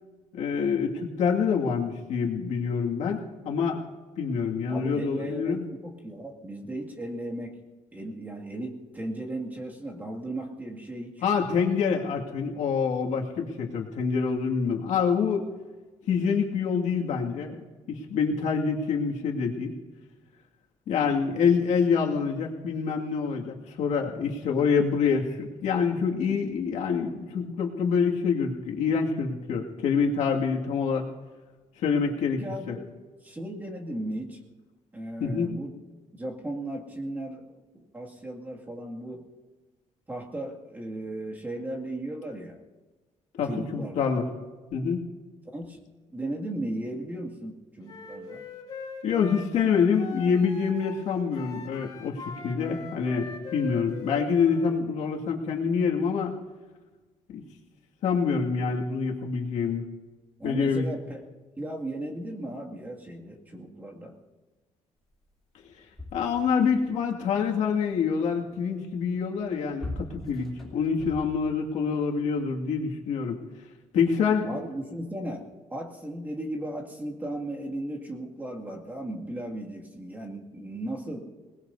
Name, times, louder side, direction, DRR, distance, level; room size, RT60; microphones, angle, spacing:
voice 1, 0.3-3.8 4.2-5.7 11.2-15.5 16.1-19.7 20.9-31.1 31.8-32.4 32.7-32.8 35.2-35.5 43.4-44.3 44.7-45.1 49.0-56.4 57.3-57.4 58.0-59.9 60.4-60.9 66.1-73.4 73.9-74.5, left 6 dB, 80° left, 0 dB, 2.2 m, -26 dB
voice 2, 4.7-7.6 7.9-11.3 32.2-32.8 33.2-34.4 34.9-35.7 36.1-39.2 40.1-42.6 43.5-44.1 45.5-45.8 46.1-48.4 60.4-61.2 61.6-64.1 74.4-75.5 75.7-81.3, right 1 dB, 15° right, -1 dB, 2.3 m, -36 dB
Wind instrument woodwind instrument, 47.8-51.0 51.3-54.7, left 4 dB, 35° left, 4.2 m, -42 dB
sound 1, 65.3-65.4 65.6-67.0 69.3-71.7 72.4-72.5, left 2 dB, 5° left, 3.2 m, -41 dB
26.5 x 19.5 x 2.8 m, 1.3 s
cardioid pair, 160°, 12 cm